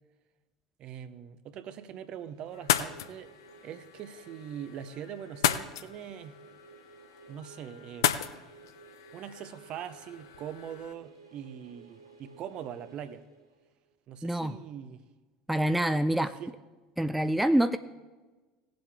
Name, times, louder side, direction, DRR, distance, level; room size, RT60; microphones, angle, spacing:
voice 1, 0.8-3.3 3.6-6.4 7.3-8.3 9.1-13.2 14.1-15.0 16.2-16.5, right 9 dB, 45° right, 0.7 m, -42 dB
sound 1, 2.1-13.9, right 4 dB, 85° right, 1.5 m, -55 dB
sound 2, 2.5-10.9, left 11 dB, 65° left, 0.5 m, -35 dB
voice 2, 14.2-14.6 15.5-16.3 17.0-17.8, right 1 dB, 5° right, 0.4 m, -26 dB
18.5 x 7.7 x 3.5 m
figure-of-eight pair, 70°, 2 cm